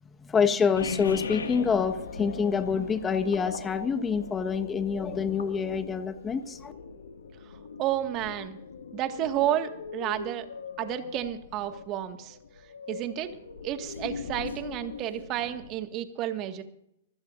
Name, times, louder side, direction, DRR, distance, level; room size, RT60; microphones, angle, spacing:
voice 1, 0.2-6.7, left 6 dB, 20° left, 9 dB, 1.3 m, -27 dB
sound 1, 0.7-15.7, left 5 dB, 85° left, 1.9 m, -40 dB
voice 2, 7.8-8.6 8.9-10.5 10.8-12.4 12.9-13.4 13.6-16.6, right 12 dB, 35° right, 7 dB, 1.8 m, -31 dB
25.0 x 15.5 x 2.6 m, 0.75 s
hypercardioid pair, 115°, 0 cm